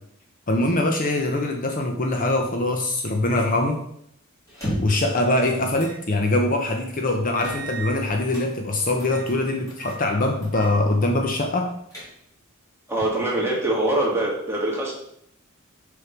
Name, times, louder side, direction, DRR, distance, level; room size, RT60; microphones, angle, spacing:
voice 1, 0.5-3.8 4.8-11.7, left 2 dB, 40° left, 3 dB, 0.8 m, -23 dB
sound 1, 4.5-5.1 5.8-6.0 6.4-6.5 7.4-8.5 9.0-9.4 9.7-10.0 10.4-10.7 11.1-11.2 11.6-12.4, right 1 dB, 15° left, 3.2 m, -34 dB
voice 2, 12.9-14.9, right 1 dB, 10° right, -4 dB, 2.1 m, -23 dB
6.6 x 5.5 x 4.5 m, 0.72 s
head